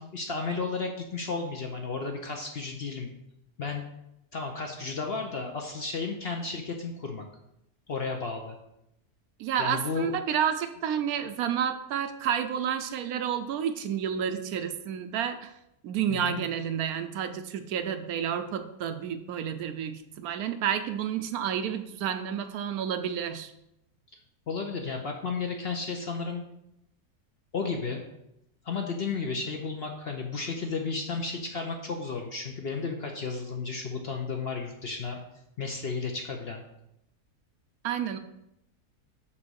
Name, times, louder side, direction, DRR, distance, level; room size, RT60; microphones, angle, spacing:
voice 1, 0.0-3.1 3.6-3.9 4.3-7.2 7.9-8.6 9.6-10.1 16.1-16.4 24.5-26.4 27.5-28.0 28.6-35.2 35.6-36.6, left 4 dB, 55° left, 2 dB, 0.7 m, -33 dB
voice 2, 9.4-15.5 15.8-23.5 37.8-38.2, right 8 dB, 75° right, 8 dB, 1.0 m, -30 dB
6.0 x 4.0 x 6.2 m, 0.83 s
omnidirectional pair, 1.7 m